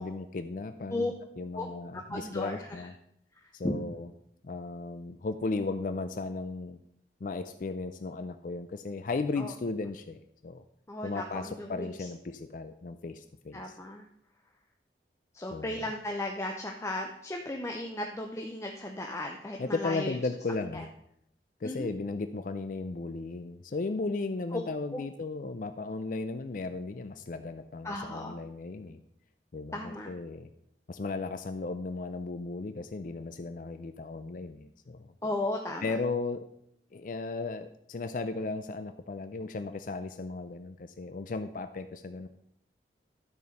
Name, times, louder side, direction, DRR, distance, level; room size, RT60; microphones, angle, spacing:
voice 1, 0.0-2.9 3.5-4.1 4.4-6.8 7.2-10.6 11.0-13.8 15.5-15.9 19.6-20.9 21.6-29.0 29.5-30.5 30.9-35.1 35.8-36.5 36.9-42.3, left 3 dB, 50° left, 10 dB, 0.4 m, -35 dB
voice 2, 2.1-2.8 3.6-3.8 9.4-9.5 10.9-12.1 13.5-14.0 15.3-20.2 20.7-20.8 21.6-21.9 24.5-24.6 24.9-25.0 27.8-28.4 29.7-30.1 35.2-35.9, left 1 dB, 15° left, 1 dB, 0.7 m, -35 dB
12.0 x 4.5 x 5.3 m, 0.72 s
head